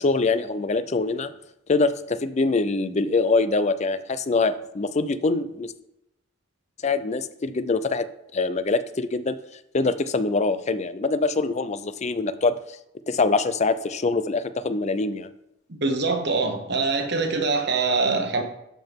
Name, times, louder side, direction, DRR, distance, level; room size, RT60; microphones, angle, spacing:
voice 1, 0.0-1.3 1.7-5.7 6.8-8.1 8.3-9.4 9.7-12.6 13.1-15.3, left 3 dB, 35° left, 13 dB, 0.5 m, -24 dB
voice 2, 15.7-18.4, right 3 dB, 55° right, 4 dB, 1.3 m, -24 dB
12.5 x 5.6 x 3.6 m, 0.84 s
head